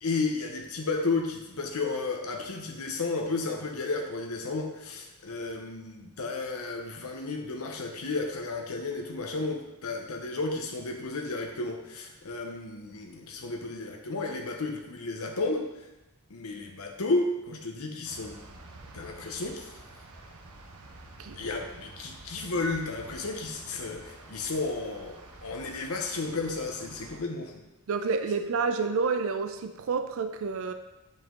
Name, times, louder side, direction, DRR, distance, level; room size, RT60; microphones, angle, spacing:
voice 1, 0.0-15.6 16.3-18.4 18.9-19.7 21.4-27.6, left 3 dB, 75° left, 2 dB, 0.8 m, -33 dB
sound 1, 18.0-27.2, right 2 dB, 80° right, 0.9 m, -49 dB
voice 2, 27.9-30.7, right 4 dB, 65° right, 8 dB, 0.4 m, -29 dB
7.3 x 5.5 x 3.7 m, 0.98 s
head